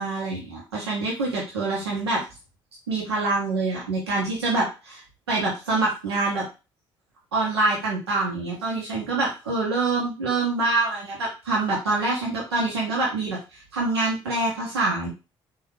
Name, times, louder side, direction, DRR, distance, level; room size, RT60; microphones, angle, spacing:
voice 1, 0.0-2.2 2.9-5.0 5.3-6.4 7.3-15.1, right 3 dB, 90° right, -4 dB, 0.8 m, -25 dB
3.7 x 2.8 x 2.9 m, 0.29 s
hypercardioid pair, 50°, 13 cm